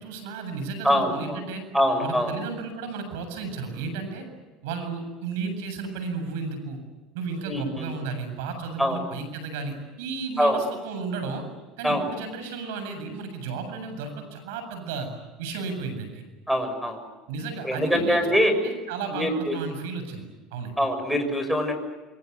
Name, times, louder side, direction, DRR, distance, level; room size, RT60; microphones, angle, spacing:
voice 1, 0.0-1.6 2.0-4.2 4.6-6.8 7.1-11.4 11.8-15.1 15.4-16.2 17.3-20.2 20.5-20.8, right 4 dB, 85° right, 8 dB, 7.7 m, -33 dB
voice 2, 0.8-1.4 1.7-2.3 7.5-7.9 8.8-9.0 10.4-10.6 11.8-12.0 16.5-17.0 17.6-18.5 19.1-19.5 20.8-21.7, equal, ahead, 8 dB, 6.5 m, -23 dB
28.0 x 24.5 x 8.3 m, 1.2 s
supercardioid pair, 115°, 0 cm